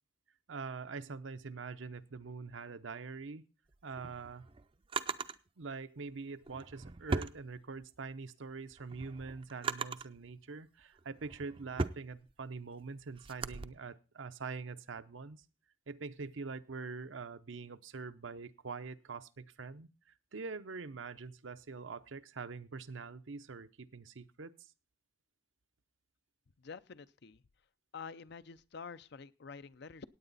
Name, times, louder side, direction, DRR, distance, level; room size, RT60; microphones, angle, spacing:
voice 1, 0.5-3.5 3.8-4.5 5.6-15.4 15.9-19.9 20.3-24.5, right 4 dB, 75° right, 11 dB, 0.7 m, -44 dB
Drawer open or close, 3.7-5.4 6.4-8.0 8.5-10.2 10.8-13.7, right 4 dB, 25° right, 0.5 m, -39 dB
voice 2, 26.6-27.4 27.9-30.0, left 5 dB, 60° left, 15 dB, 0.6 m, -48 dB
16.5 x 9.0 x 4.0 m, 0.33 s
head